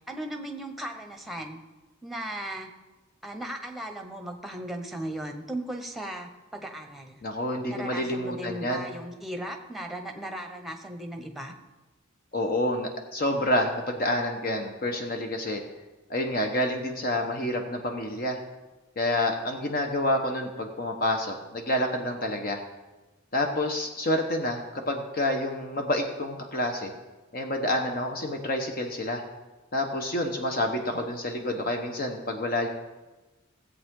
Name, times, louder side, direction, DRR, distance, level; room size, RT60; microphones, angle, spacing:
voice 1, 0.1-1.6 2.0-2.7 3.2-7.2 7.7-11.5, right 1 dB, ahead, 4 dB, 1.1 m, -37 dB
voice 2, 7.2-8.9 12.3-15.6 16.1-18.4 19.0-22.6 23.3-26.9 27.3-29.2 29.7-32.7, left 1 dB, 45° left, 3 dB, 1.1 m, -28 dB
17.0 x 8.1 x 3.8 m, 1.1 s
head